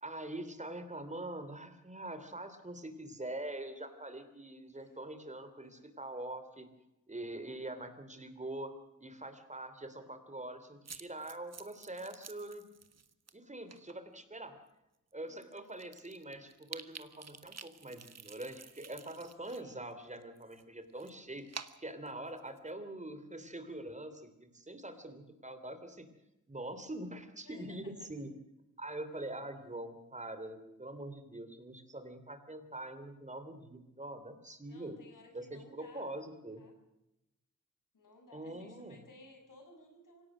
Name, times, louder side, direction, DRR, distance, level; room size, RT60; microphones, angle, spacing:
voice 1, 0.0-6.7 7.1-8.7 9.0-12.6 13.3-14.5 15.1-26.1 26.5-28.3 28.8-35.0 35.3-36.6 38.3-39.0, right 1 dB, 25° right, 9 dB, 3.1 m, -44 dB
sound 1, 10.8-13.3 13.7-13.9 14.7-14.8 15.1-15.2 15.4-19.6 19.9-22.7, right 5 dB, 55° right, 1.4 m, -50 dB
voice 2, 15.2-15.6 19.5-19.9 24.9-25.0 27.4-27.9 29.6-29.7 34.7-36.7 37.9-40.3, left 2 dB, 90° left, 4 dB, 6.5 m, -58 dB
26.0 x 17.5 x 6.3 m, 0.90 s
wide cardioid pair, 115°, 31 cm